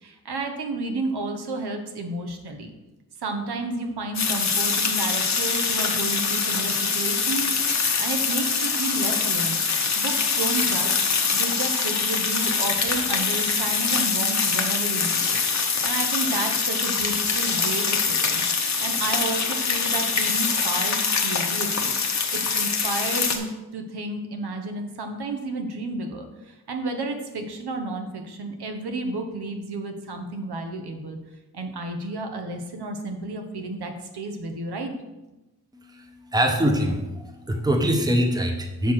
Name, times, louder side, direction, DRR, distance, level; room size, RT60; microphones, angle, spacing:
voice 1, 0.0-2.7 3.2-9.6 10.0-11.0 11.3-18.4 18.8-21.9 22.3-31.2 31.5-34.9, right 2 dB, 80° right, 5 dB, 1.1 m, -31 dB
sound 1, 4.1-23.4, left 5 dB, 45° left, 0.9 m, -24 dB
voice 2, 36.3-37.1 37.5-38.9, equal, 10° right, 3 dB, 0.9 m, -22 dB
6.8 x 4.8 x 5.8 m, 1.0 s
wide cardioid pair, 130°, 38 cm